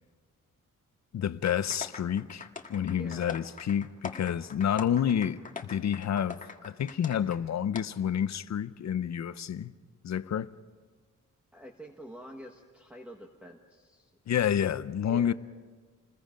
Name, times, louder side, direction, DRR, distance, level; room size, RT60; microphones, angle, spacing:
voice 1, 1.1-5.4 5.6-9.7 10.0-10.5 14.3-15.3, left 9 dB, 60° left, 0.7 m, -29 dB
sound 1, 1.5-7.4 7.7-7.8, left 4 dB, 25° left, 1.7 m, -42 dB
voice 2, 2.9-3.3 11.5-14.1 15.1-15.3, equal, 5° right, 1.3 m, -47 dB
28.0 x 21.0 x 5.1 m
wide cardioid pair, 140°, 32 cm